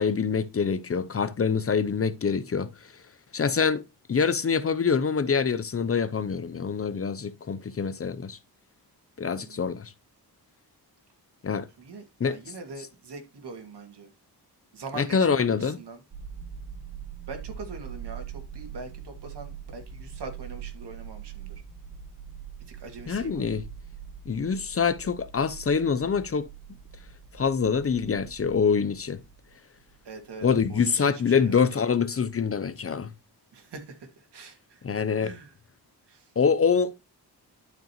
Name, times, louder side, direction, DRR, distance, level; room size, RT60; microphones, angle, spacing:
voice 1, 0.0-2.7 3.3-3.8 4.1-8.4 9.2-9.9 11.4-11.7 12.2-12.3 15.0-15.8 23.1-23.6 24.3-26.5 27.3-29.2 30.4-33.1 34.8-35.3 36.4-36.9, left 6 dB, 35° left, 0.6 m, -25 dB
voice 2, 9.4-9.7 11.8-14.1 14.7-16.0 17.3-21.6 22.7-23.6 30.0-31.7 33.5-34.8 35.2-35.5 36.1-36.3, right 3 dB, 80° right, 2.3 m, -43 dB
sound 1, 16.1-30.3, right 8 dB, 65° right, 3.4 m, -43 dB
12.0 x 5.1 x 3.0 m
wide cardioid pair, 120°, 40 cm